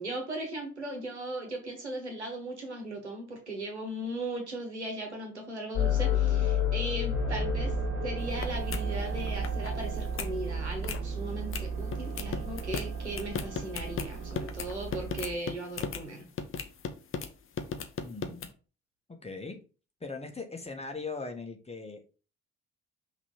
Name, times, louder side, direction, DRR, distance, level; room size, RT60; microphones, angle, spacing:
voice 1, 0.0-7.7 8.0-16.2, right 1 dB, 85° right, 2 dB, 1.2 m, -38 dB
sound 1, 5.7-9.8, left 11 dB, 70° left, 1.1 m, -30 dB
sound 2, 7.1-15.3, right 5 dB, 65° right, 1.5 m, -35 dB
sound 3, 8.2-8.4 8.7-8.8 9.2-9.7 10.0-10.3 10.7-11.0 11.5-11.6 11.9-16.0 16.4-17.3 17.6-18.5, left 6 dB, 40° left, 1.0 m, -36 dB
voice 2, 18.0-18.5 19.1-19.6 20.0-22.0, left 3 dB, 20° left, 4 dB, 1.6 m, -39 dB
5.9 x 3.3 x 5.7 m, 0.35 s
figure-of-eight pair, 45°, 33 cm